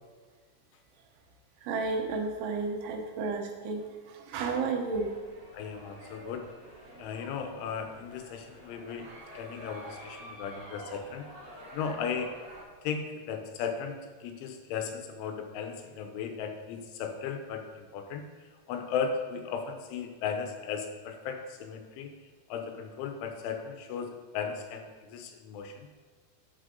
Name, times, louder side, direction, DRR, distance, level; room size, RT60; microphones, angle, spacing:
voice 1, 1.6-5.1, right 4 dB, 80° right, 2 dB, 3.4 m, -32 dB
sound 1, 4.9-12.6, right 1 dB, 45° right, 4.0 m, -48 dB
voice 2, 5.5-6.4 7.0-11.3 11.7-12.3 12.8-22.1 22.5-26.0, left 6 dB, 85° left, 5 dB, 3.3 m, -36 dB
11.5 x 5.8 x 3.8 m, 1.5 s
omnidirectional pair, 5.4 m